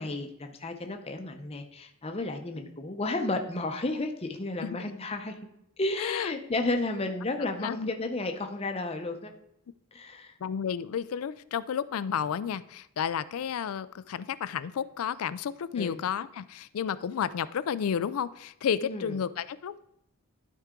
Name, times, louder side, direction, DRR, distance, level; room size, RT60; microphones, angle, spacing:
voice 1, 0.0-5.4 5.8-9.3 9.9-10.3 15.8-16.0 18.8-19.1, left 2 dB, 30° left, 5 dB, 0.7 m, -32 dB
voice 2, 6.0-6.3 7.6-7.9 10.4-19.8, left 8 dB, 80° left, 16 dB, 0.4 m, -31 dB
12.0 x 4.7 x 3.7 m, 0.80 s
head